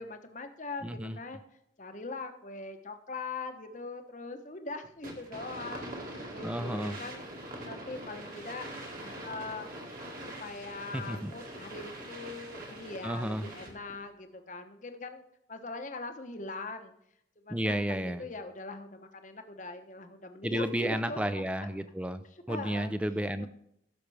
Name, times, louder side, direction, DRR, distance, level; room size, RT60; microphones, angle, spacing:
voice 1, 0.0-1.4 1.8-8.7 9.0-9.7 10.2-15.2 15.5-16.9 17.4-21.7 22.3-22.9 23.4-23.5, left 3 dB, 40° left, 7 dB, 0.9 m, -42 dB
voice 2, 0.8-1.2 6.4-7.0 10.9-11.3 13.0-13.5 17.5-18.2 20.4-23.5, equal, 5° right, 11 dB, 0.4 m, -32 dB
sound 1, 5.0-13.9, right 1 dB, 45° right, 1.8 m, -43 dB
15.0 x 6.5 x 3.4 m, 0.75 s
head